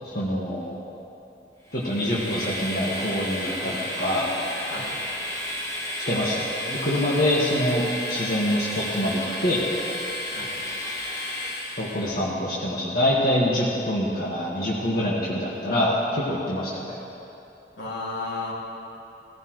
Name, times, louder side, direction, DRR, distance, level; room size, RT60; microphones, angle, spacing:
voice 1, 0.0-0.8 1.7-4.3 6.0-9.6 11.8-16.9, left 1 dB, 55° left, -6 dB, 1.7 m, -25 dB
Train, 1.7-12.2, left 1 dB, 15° left, 1.4 m, -32 dB
voice 2, 17.8-18.5, left 3 dB, 80° left, -5 dB, 2.6 m, -33 dB
17.0 x 15.5 x 3.2 m, 2.9 s
head